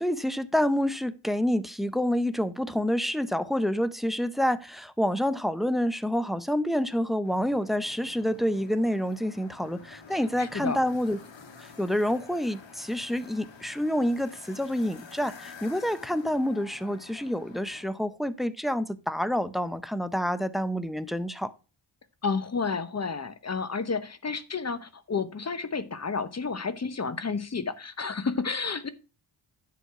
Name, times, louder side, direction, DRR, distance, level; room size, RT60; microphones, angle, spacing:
voice 1, 0.0-11.2 11.6-21.5, equal, ahead, 0.7 m, -28 dB
sound 1, 7.2-17.8, left 5 dB, 65° left, 1.8 m, -49 dB
voice 2, 10.1-10.8 22.2-28.9, left 5 dB, 30° left, 1.0 m, -31 dB
10.5 x 4.2 x 5.9 m
cardioid pair, 85°, 48 cm